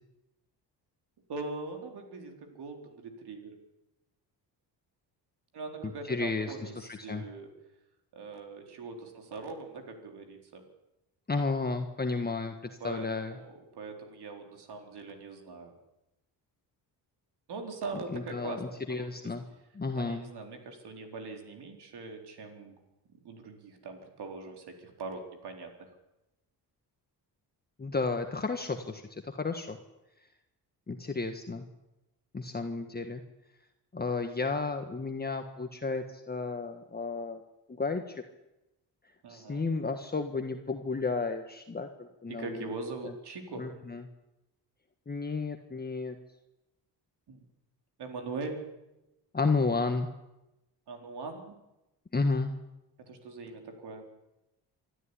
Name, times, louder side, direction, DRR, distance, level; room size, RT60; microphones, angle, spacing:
voice 1, 1.3-3.6 5.5-7.5 8.1-10.7 12.8-15.7 17.5-19.1 19.9-22.8 23.2-25.9 39.2-39.7 42.3-43.7 47.3-47.4 48.0-48.6 50.9-51.6 53.0-54.0, right 3 dB, 65° right, 4 dB, 4.3 m, -41 dB
voice 2, 6.1-7.2 11.3-13.4 18.1-19.4 19.7-20.2 27.8-29.8 30.9-31.6 32.3-33.2 33.9-37.4 37.8-38.2 39.3-42.7 43.6-44.1 45.1-46.1 49.3-50.1 52.1-52.5, left 3 dB, 20° left, 5 dB, 1.5 m, -32 dB
24.5 x 13.0 x 10.0 m, 0.96 s
cardioid pair, 105°, 42 cm